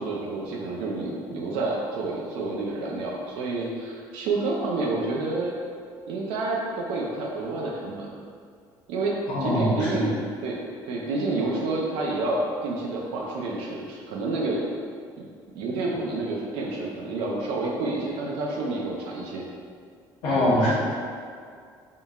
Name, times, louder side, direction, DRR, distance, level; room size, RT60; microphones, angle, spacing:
voice 1, 0.0-5.5 6.1-8.1 8.9-9.1 9.4-10.1 10.4-10.6 10.8-14.6 15.5-19.4, right 3 dB, 85° right, -3 dB, 0.5 m, -29 dB
voice 2, 9.3-10.0 20.2-20.7, left 1 dB, 85° left, -10 dB, 0.9 m, -22 dB
4.0 x 3.7 x 2.4 m, 2.2 s
cardioid pair, 130°, 9 cm